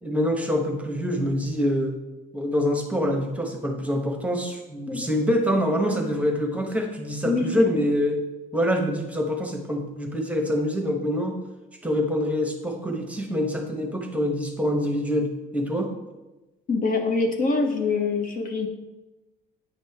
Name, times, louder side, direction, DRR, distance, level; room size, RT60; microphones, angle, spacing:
voice 1, 0.0-1.9 2.3-8.2 8.5-11.4 11.8-15.9, equal, 10° right, 3 dB, 1.0 m, -25 dB
voice 2, 7.2-7.7 16.7-18.7, left 3 dB, 55° left, 3 dB, 1.1 m, -24 dB
9.0 x 5.2 x 3.5 m, 1.1 s
cardioid pair, 110°, 17 cm